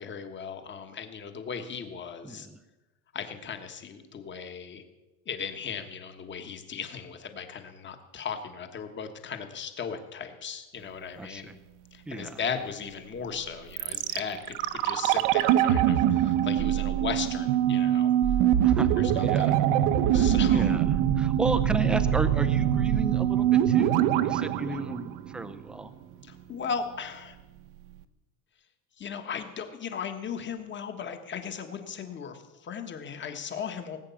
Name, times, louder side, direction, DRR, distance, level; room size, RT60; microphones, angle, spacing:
voice 1, 0.0-2.5 3.1-4.8 5.3-11.5 11.9-18.1 19.0-19.5 20.1-20.7 26.2-27.4 29.0-34.0, left 6 dB, 25° left, 7 dB, 1.4 m, -37 dB
voice 2, 2.2-2.6 11.2-11.5 12.1-12.4 18.6-18.9 19.2-19.6 20.1-25.9, right 2 dB, ahead, 10 dB, 0.4 m, -34 dB
sound 1, 13.8-25.8 26.0-26.1, right 11 dB, 65° right, 1.0 m, -24 dB
18.5 x 8.9 x 7.0 m, 1.1 s
cardioid pair, 155°, 46 cm